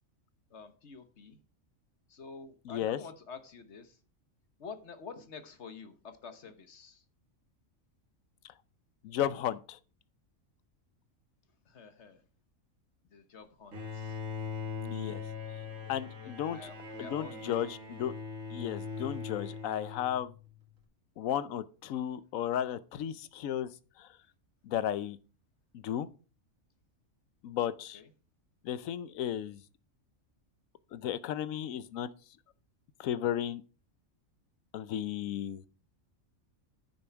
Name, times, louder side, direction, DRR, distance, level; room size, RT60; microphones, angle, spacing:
voice 1, 0.5-1.4 2.1-4.0 4.6-7.0 11.6-12.2 13.0-14.2 15.8-17.6 27.9-28.1, left 5 dB, 60° left, 1.4 m, -48 dB
voice 2, 2.7-3.0 9.0-9.8 14.8-15.2 15.9-16.7 17.0-18.1 18.5-20.3 21.2-23.7 24.0-24.1 24.6-25.2 25.7-26.1 27.4-28.0 28.6-29.6 30.9-32.1 33.0-33.6 34.7-35.6, left 10 dB, 85° left, 1.1 m, -34 dB
Bowed string instrument, 13.7-20.5, left 5 dB, 75° right, 2.3 m, -41 dB
9.8 x 7.0 x 4.5 m
omnidirectional pair, 1.4 m